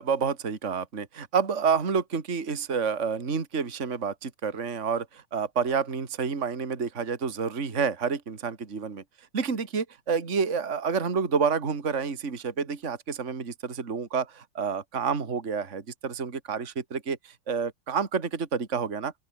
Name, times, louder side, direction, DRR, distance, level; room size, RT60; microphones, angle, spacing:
voice 1, 0.0-9.0 9.3-19.1, right 5 dB, 35° right, 2.5 m, -29 dB
open air
omnidirectional pair, 2.4 m